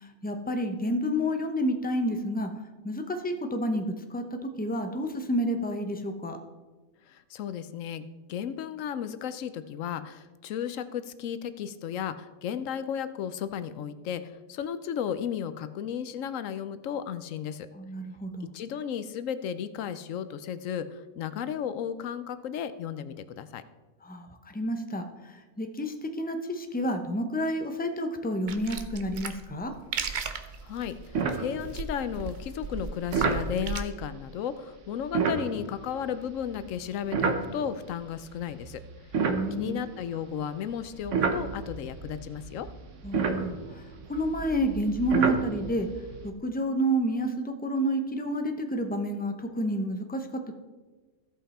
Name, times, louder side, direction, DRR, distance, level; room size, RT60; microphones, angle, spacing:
voice 1, 0.2-2.5 2.8-3.8 4.1-6.4 17.7-18.5 24.0-29.7 39.2-39.8 43.0-43.8 44.1-45.9 46.2-50.5, equal, 10° left, 6 dB, 0.4 m, -30 dB
voice 2, 7.1-17.7 18.5-23.6 30.6-38.8 39.6-42.7, left 8 dB, 75° left, 12 dB, 0.9 m, -34 dB
sound 1, 28.5-33.8, right 5 dB, 50° right, 0.6 m, -36 dB
sound 2, 30.3-30.5 30.8-30.9 31.1-32.0 33.1-33.5 35.0-37.9 38.5-40.3 40.8-46.3, right 5 dB, 65° right, 1.2 m, -30 dB
15.5 x 5.6 x 4.2 m, 1.3 s
omnidirectional pair, 1.4 m